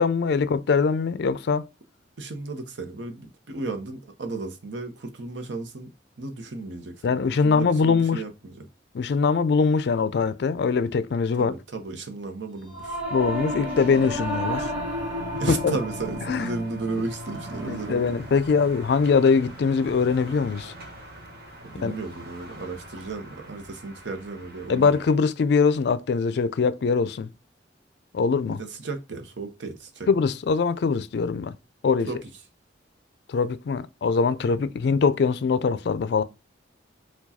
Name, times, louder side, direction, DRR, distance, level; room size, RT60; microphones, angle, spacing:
voice 1, 0.0-1.7 7.0-8.2 8.9-11.5 13.1-14.7 15.5-15.8 16.3-16.5 17.6-20.7 21.8-21.9 24.7-27.3 28.1-28.6 30.1-31.5 31.8-32.1 33.3-36.2, left 5 dB, 65° left, 0.4 m, -22 dB
voice 2, 2.2-5.9 6.2-8.7 11.4-13.0 15.4-18.2 21.6-25.0 28.5-30.1 32.1-32.2, right 3 dB, 75° right, 0.8 m, -34 dB
Singing / Musical instrument, 12.7-22.2, equal, 15° right, 1.9 m, -34 dB
sound 1, 14.8-25.2, right 1 dB, 60° right, 1.4 m, -45 dB
4.7 x 2.3 x 4.0 m
head